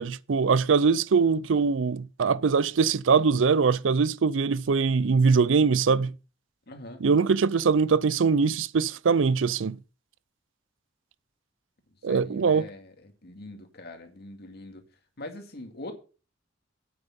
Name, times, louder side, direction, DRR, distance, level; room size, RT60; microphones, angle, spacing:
voice 1, 0.0-6.1 7.0-9.8 12.0-12.7, right 5 dB, 75° right, 0.5 m, -22 dB
voice 2, 6.7-7.1 12.0-14.9 15.2-15.9, left 2 dB, 55° left, 2.2 m, -42 dB
8.8 x 8.1 x 5.4 m
head